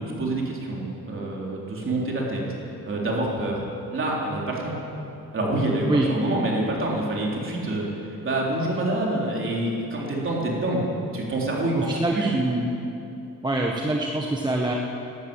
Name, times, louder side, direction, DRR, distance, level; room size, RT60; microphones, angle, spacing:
voice 1, 0.0-2.4 2.8-3.6 3.9-4.7 5.3-7.8 8.2-10.8 11.1-12.3, right 2 dB, 35° right, -3 dB, 3.7 m, -26 dB
voice 2, 11.8-12.7 13.4-14.7, right 2 dB, 10° right, -1 dB, 1.2 m, -25 dB
13.0 x 12.0 x 8.9 m, 2.9 s
cardioid pair, 120°, 36 cm